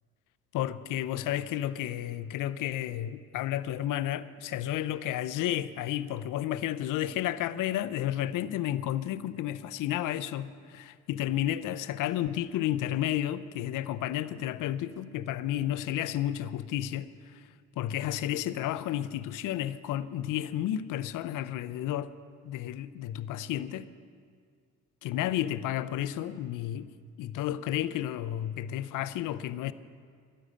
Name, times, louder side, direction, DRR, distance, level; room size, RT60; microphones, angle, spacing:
voice 1, 0.5-17.4 17.8-22.1 22.4-23.9 25.0-26.9 27.2-29.7, left 12 dB, 70° left, 14 dB, 0.7 m, -32 dB
13.0 x 7.9 x 9.9 m, 2.1 s
supercardioid pair, 65°, 33 cm